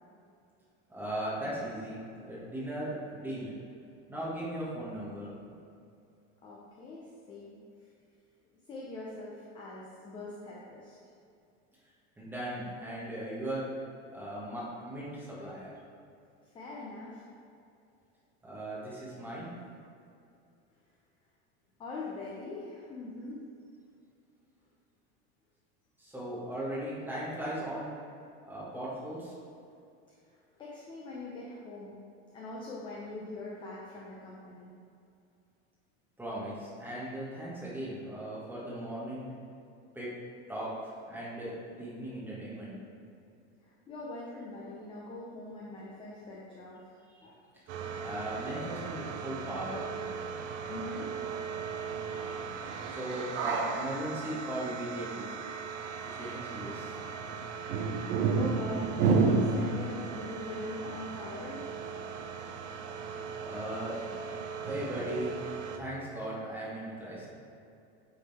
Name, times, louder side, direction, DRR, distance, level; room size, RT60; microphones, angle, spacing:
voice 1, 0.9-3.5 4.1-5.3 12.2-13.7 14.1-15.7 18.4-19.5 26.0-27.9 28.5-29.3 36.2-39.3 39.9-40.1 40.5-42.7 47.1-47.2 48.0-49.8 51.8-52.5 52.9-55.3 56.0-57.0 63.4-63.9 64.6-65.3 65.7-67.4, right 1 dB, 5° right, -8 dB, 1.5 m, -38 dB
voice 2, 6.4-7.6 8.7-11.0 16.5-17.2 21.8-23.5 30.6-32.0 32.3-34.7 43.9-47.4 50.7-51.1 56.1-56.2 57.0-57.1 58.4-61.6 63.9-64.1, left 2 dB, 15° left, -5 dB, 0.5 m, -42 dB
sound 1, 47.7-65.8, right 4 dB, 35° right, 0.5 m, -34 dB
8.1 x 3.9 x 4.1 m, 2.5 s
supercardioid pair, 165°, 35 cm